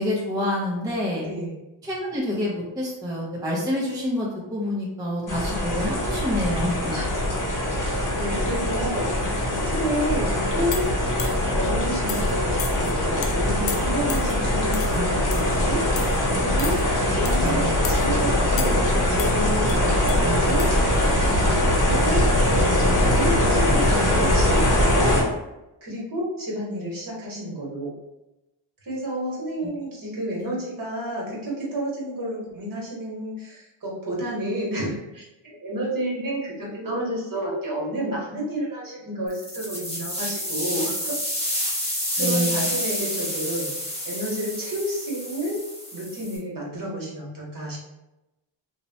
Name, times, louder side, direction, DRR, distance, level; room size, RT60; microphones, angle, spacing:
voice 1, 0.0-1.3 1.8-6.9 14.9-15.1 17.4-17.8 29.6-29.7 42.2-42.7, left 1 dB, 10° right, -5 dB, 0.6 m, -27 dB
voice 2, 1.2-1.6 6.9-7.2 7.8-10.9 11.5-15.9 16.3-18.8 19.1-20.7 21.0-21.6 21.9-25.3 25.8-27.9 28.8-41.1 42.1-43.7 44.0-45.6 45.9-47.8, right 1 dB, 45° right, -4 dB, 1.1 m, -30 dB
sound 1, 5.3-25.2, left 1 dB, 40° left, 0.9 m, -22 dB
sound 2, 10.7-11.5 12.1-12.3 12.6-12.9 13.2-13.3 13.7-14.3 14.7-15.0 15.3-15.6 16.0-16.2 16.6-16.8 17.2-17.5 17.8-18.0 18.6-18.9 19.2-20.2 20.6-20.7, left 7 dB, 75° left, 0.5 m, -34 dB
sound 3, 39.3-46.4, equal, 15° left, 1.1 m, -29 dB
2.8 x 2.1 x 2.7 m, 0.95 s
cardioid pair, 85°, 46 cm